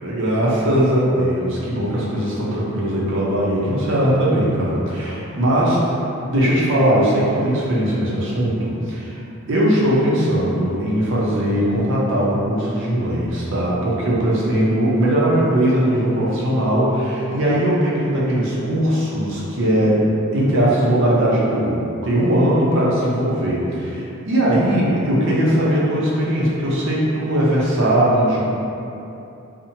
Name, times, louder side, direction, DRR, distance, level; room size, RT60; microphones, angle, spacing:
voice 1, 0.0-5.9 6.3-9.1 9.5-20.0 20.3-28.4, right 1 dB, 55° right, -6 dB, 0.5 m, -19 dB
2.7 x 2.1 x 2.7 m, 2.7 s
head